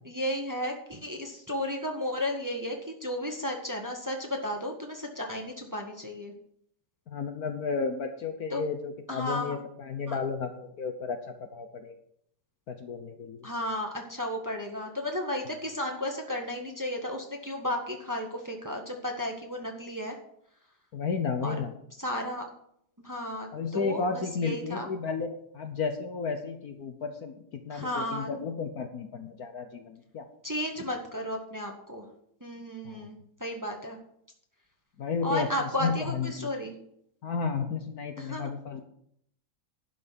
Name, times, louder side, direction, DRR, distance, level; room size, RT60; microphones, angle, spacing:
voice 1, 0.0-2.8 3.0-6.3 8.5-8.6 9.1-9.5 10.1-10.2 13.4-20.2 21.4-21.5 22.0-22.4 23.0-24.9 27.7-28.3 30.4-32.0 32.4-34.0 35.2-36.8 38.2-38.5, left 1 dB, 10° right, 2 dB, 1.5 m, -33 dB
voice 2, 7.1-12.0 12.7-13.5 20.9-21.7 23.5-30.2 32.8-33.1 35.0-36.5 37.2-38.8, left 5 dB, 55° left, 6 dB, 1.4 m, -33 dB
11.5 x 6.2 x 7.6 m, 0.70 s
omnidirectional pair, 2.0 m